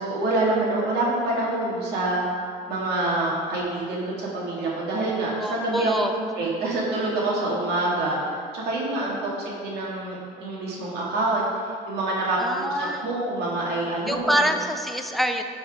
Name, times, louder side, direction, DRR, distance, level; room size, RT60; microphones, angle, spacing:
voice 1, 0.0-2.2 2.7-5.9 6.4-8.2 8.5-11.5 11.9-14.5, right 2 dB, 80° right, -4 dB, 2.0 m, -26 dB
voice 2, 5.4-6.1 12.4-13.0 14.1-15.4, equal, ahead, 5 dB, 0.5 m, -25 dB
11.0 x 4.4 x 3.6 m, 2.2 s
cardioid pair, 110°, 17 cm